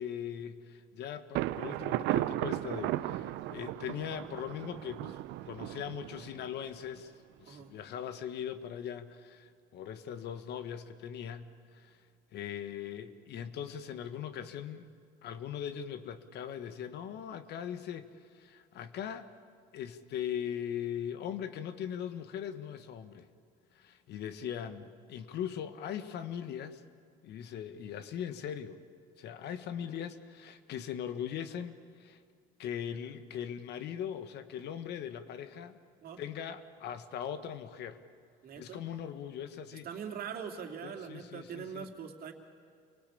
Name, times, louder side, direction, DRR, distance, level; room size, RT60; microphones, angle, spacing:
voice 1, 0.0-5.2 5.4-7.1 7.4-12.0 12.3-14.8 15.2-18.1 18.3-19.3 19.7-23.3 23.7-26.8 27.2-28.8 29.2-31.7 32.0-32.2 32.6-35.8 36.2-38.0 38.5-39.9 40.8-41.9, left 9 dB, 65° left, 11 dB, 1.4 m, -40 dB
Thunder, 1.3-7.0, right 15 dB, 70° right, 0.7 m, -35 dB
voice 2, 38.4-38.8 39.8-42.3, right 7 dB, 55° right, 3 dB, 2.7 m, -42 dB
27.5 x 18.5 x 8.5 m, 2.2 s
supercardioid pair, 90°, 19 cm